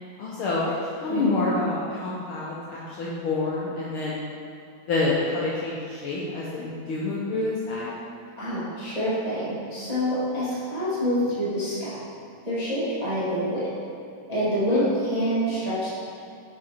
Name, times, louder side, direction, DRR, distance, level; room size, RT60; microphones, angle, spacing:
voice 1, 0.2-0.6 1.0-4.2 4.9-7.9 14.7-14.8, left 3 dB, 80° left, -6 dB, 1.2 m, -27 dB
voice 2, 1.1-1.4 8.4-12.0 12.4-13.6 14.3-15.9, equal, 25° right, -11 dB, 0.8 m, -26 dB
6.5 x 5.5 x 4.2 m, 2.4 s
omnidirectional pair, 3.4 m